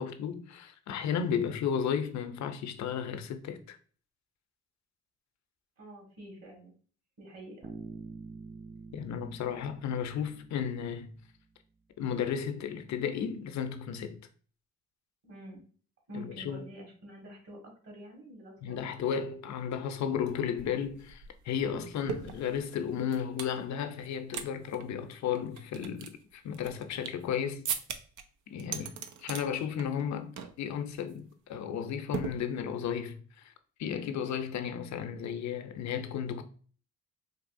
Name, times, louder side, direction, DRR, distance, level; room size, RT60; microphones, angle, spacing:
voice 1, 0.0-3.8 8.9-11.1 12.0-14.2 16.1-16.7 18.6-27.7 28.5-28.9 29.2-33.5 33.8-36.4, left 8 dB, 65° left, 0.6 m, -34 dB
voice 2, 5.8-6.7 7.2-7.7 15.2-15.6 16.1-18.8 28.7-28.9, right 1 dB, 55° right, 1.7 m, -47 dB
Bass guitar, 7.6-11.4, right 4 dB, 20° right, 0.4 m, -47 dB
sound 1, 20.3-20.4 20.6-23.6 24.0-24.5 24.7-24.8 25.3-27.3 27.6-28.2 28.6-29.4 29.8-30.1 30.4-30.6 30.9-31.2 32.1-32.9, right 7 dB, 75° right, 0.5 m, -39 dB
4.1 x 2.8 x 2.6 m
cardioid pair, 90°, 30 cm